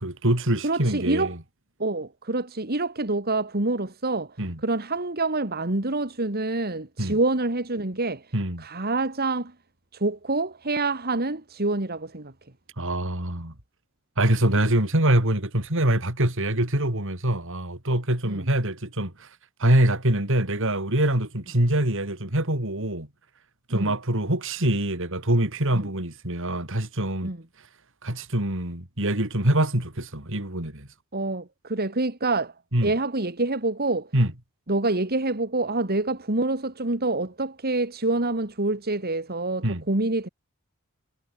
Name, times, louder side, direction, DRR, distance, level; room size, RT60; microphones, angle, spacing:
voice 1, 0.0-1.4 4.4-4.6 7.0-7.2 8.3-8.6 12.8-13.5 14.2-19.3 19.6-23.1 23.7-27.3 28.0-30.9 32.7-32.9 34.1-34.3 39.6-39.8, right 1 dB, 65° right, 5.1 m, -24 dB
voice 2, 0.6-1.4 1.8-4.3 4.6-8.3 8.6-9.5 9.9-12.3 18.2-18.5 23.7-23.9 25.7-25.9 27.2-27.4 31.1-32.5 32.8-34.1 34.7-40.3, right 2 dB, 45° right, 2.6 m, -26 dB
head